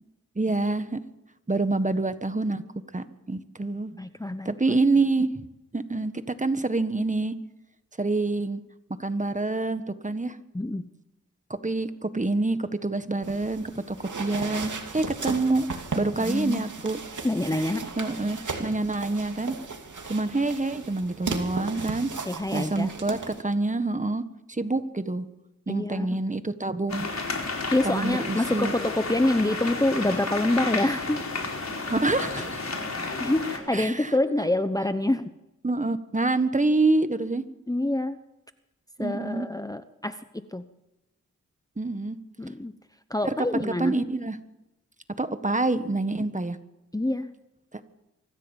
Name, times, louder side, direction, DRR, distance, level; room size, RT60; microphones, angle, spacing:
voice 1, 0.3-1.0 1.5-2.6 2.9-3.9 4.4-5.3 5.7-7.3 8.0-8.6 9.0-10.3 11.6-15.7 15.9-17.0 17.5-17.6 18.0-19.6 20.1-22.1 22.5-24.2 24.5-25.3 25.7-27.1 27.8-28.7 31.9-32.6 33.7-34.1 35.6-37.4 39.0-39.5 41.8-42.2 43.2-44.4 45.2-46.6, right 2 dB, 25° right, 10 dB, 1.5 m, -26 dB
voice 2, 3.9-4.5 10.5-10.9 16.2-16.7 17.2-17.8 22.3-22.9 25.7-26.2 27.7-31.2 33.0-35.3 37.7-38.2 39.0-40.6 42.4-42.7 43.1-44.0 46.2-46.3 46.9-47.3, left 1 dB, 10° left, 10 dB, 0.9 m, -26 dB
sound 1, 13.2-23.4, right 4 dB, 70° right, 2.8 m, -36 dB
sound 2, 26.9-33.6, left 3 dB, 60° left, 4.7 m, -32 dB
24.5 x 14.5 x 7.3 m, 0.97 s
cardioid pair, 65°, 31 cm